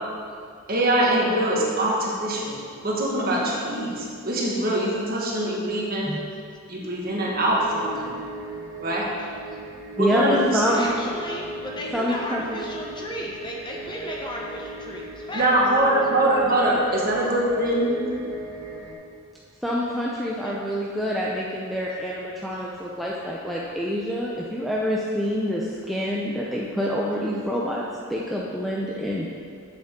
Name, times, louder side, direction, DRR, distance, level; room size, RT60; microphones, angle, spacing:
voice 1, 0.7-6.1 6.7-8.2 8.8-9.1 10.0-10.8 15.3-18.0, right 1 dB, 45° right, -4 dB, 1.5 m, -23 dB
sound 1, 7.3-18.9, right 2 dB, 85° right, 1.0 m, -36 dB
voice 2, 9.2-9.6 10.6-15.5 20.4-20.6 22.5-22.6 26.3-26.4, left 1 dB, 20° left, -1 dB, 0.9 m, -35 dB
voice 3, 10.0-10.8 11.9-12.6 19.6-27.8 28.1-29.3, equal, ahead, -5 dB, 0.5 m, -26 dB
7.9 x 7.4 x 3.7 m, 2.3 s
head